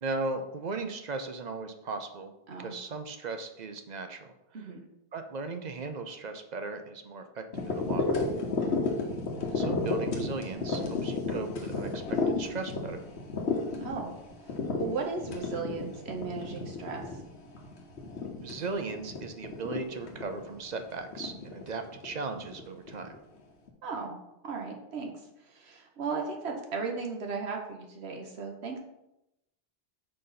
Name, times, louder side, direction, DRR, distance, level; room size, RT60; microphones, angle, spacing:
voice 1, 0.0-2.3 2.6-4.7 5.1-8.2 9.5-13.0 18.4-23.1, right 3 dB, 50° right, 7 dB, 0.7 m, -37 dB
sound 1, 7.5-23.2 23.7-23.8, left 3 dB, 85° left, 1.3 m, -33 dB
voice 2, 13.8-14.1 14.7-17.0 23.8-24.2 24.4-25.1 25.5-28.8, right 4 dB, 80° right, 2 dB, 1.3 m, -36 dB
5.4 x 4.0 x 5.7 m, 0.87 s
omnidirectional pair, 1.1 m